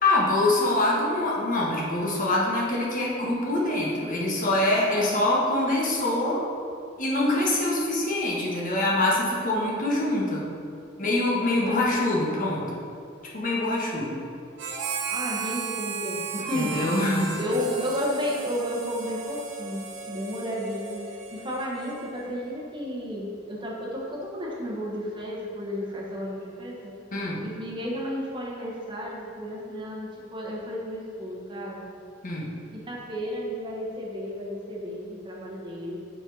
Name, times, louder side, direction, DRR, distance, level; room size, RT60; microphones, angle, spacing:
voice 1, 0.0-6.4 7.0-10.5 11.0-12.6 13.3-14.2 16.5-17.3 27.1-27.4 32.2-32.5, left 2 dB, 45° left, -5 dB, 1.4 m, -24 dB
voice 2, 4.5-5.2 9.5-9.8 11.6-11.9 15.1-17.0 17.4-21.0 21.3-26.9 27.4-31.8 32.7-36.0, equal, 25° right, -4 dB, 1.1 m, -33 dB
Harmonica, 14.6-22.3, right 5 dB, 65° right, 1.0 m, -35 dB
7.1 x 4.4 x 5.4 m, 2.4 s
head